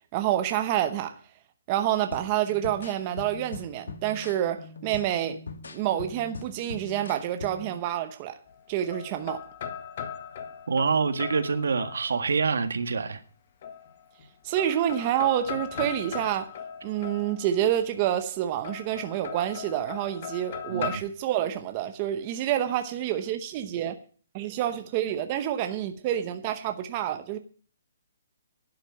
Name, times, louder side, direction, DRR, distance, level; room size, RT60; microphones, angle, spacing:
voice 1, 0.1-1.2 1.7-5.4 5.7-8.4 8.7-9.4 14.4-16.5 16.8-24.0 24.3-27.4, right 11 dB, 25° right, 0.9 m, -28 dB
sound 1, 2.1-7.8, left 4 dB, 80° left, 1.6 m, -42 dB
sound 2, 8.5-12.4 13.6-14.3 14.6-17.8 18.6-21.0, left 8 dB, 35° left, 1.4 m, -39 dB
voice 2, 10.7-13.2 20.7-21.0, right 5 dB, 80° right, 1.8 m, -26 dB
11.5 x 7.9 x 8.7 m
hypercardioid pair, 170°, 0 cm